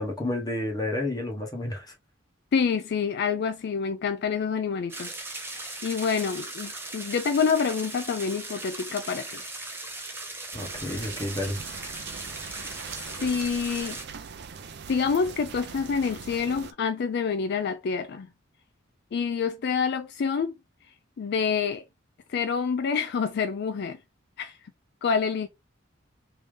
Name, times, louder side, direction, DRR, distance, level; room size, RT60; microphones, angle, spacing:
voice 1, 0.0-1.9 10.5-11.6, left 1 dB, 20° left, 1.0 m, -30 dB
voice 2, 2.5-9.4 12.5-12.8 13.2-14.0 14.9-18.3 19.1-20.5 21.2-21.8 22.3-24.0 24.4-24.5 25.0-25.5, left 6 dB, 55° left, 0.4 m, -27 dB
sound 1, 4.9-14.1, right 2 dB, 10° right, 0.7 m, -38 dB
sound 2, 10.5-16.7, right 6 dB, 60° right, 0.5 m, -41 dB
3.2 x 2.7 x 3.4 m
head